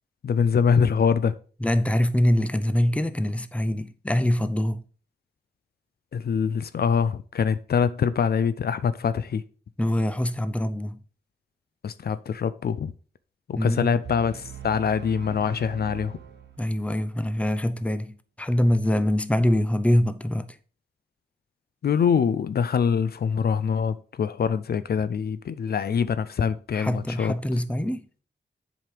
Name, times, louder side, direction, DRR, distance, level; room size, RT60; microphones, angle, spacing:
voice 1, 0.2-1.4 6.1-9.4 11.8-12.9 13.5-16.2 21.8-27.3, left 6 dB, 60° left, 0.5 m, -24 dB
voice 2, 1.6-4.8 9.8-11.0 13.5-14.0 16.6-20.6 26.7-28.1, left 1 dB, 5° left, 0.6 m, -24 dB
sound 1, 14.0-17.0, right 9 dB, 80° right, 1.1 m, -41 dB
7.5 x 5.2 x 4.8 m
wide cardioid pair, 95°, 18 cm